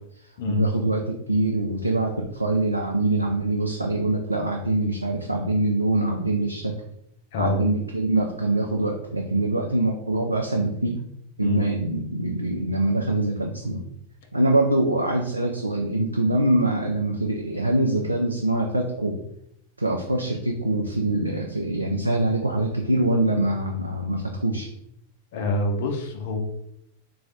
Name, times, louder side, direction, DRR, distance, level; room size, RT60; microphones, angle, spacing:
voice 1, 0.0-6.7 7.4-11.0 11.4-13.9 14.3-19.2 19.8-24.7, right 2 dB, 85° right, 1 dB, 0.4 m, -24 dB
voice 2, 7.3-7.7 11.4-11.7 25.3-26.4, left 2 dB, 55° left, 4 dB, 0.6 m, -26 dB
3.3 x 2.3 x 3.8 m, 0.77 s
figure-of-eight pair, 90°, 0 cm